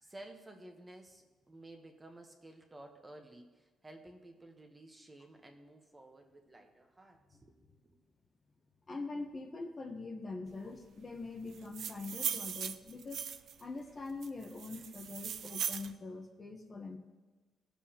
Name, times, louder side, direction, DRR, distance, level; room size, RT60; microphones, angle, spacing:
voice 1, 0.0-7.6 7.8-8.0, right 1 dB, 15° right, 3 dB, 1.0 m, -54 dB
voice 2, 8.9-13.3 13.6-17.0, left 3 dB, 25° left, 3 dB, 0.9 m, -43 dB
sound 1, 11.5-13.6 14.2-15.9, right 8 dB, 55° right, 0.4 m, -39 dB
19.0 x 7.3 x 2.9 m, 1.3 s
cardioid pair, 160°, 0 cm